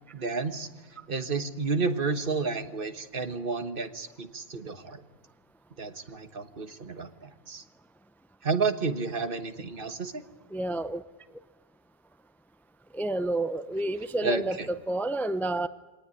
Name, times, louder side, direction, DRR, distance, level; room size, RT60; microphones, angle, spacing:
voice 1, 0.1-0.7 1.1-5.0 5.8-7.6 8.4-10.2 14.2-14.7, right 4 dB, 60° right, 10 dB, 1.5 m, -31 dB
voice 2, 10.5-11.0 12.9-14.6 14.9-15.7, right 2 dB, ahead, 13 dB, 0.6 m, -29 dB
23.0 x 18.5 x 9.8 m, 1.2 s
omnidirectional pair, 1.0 m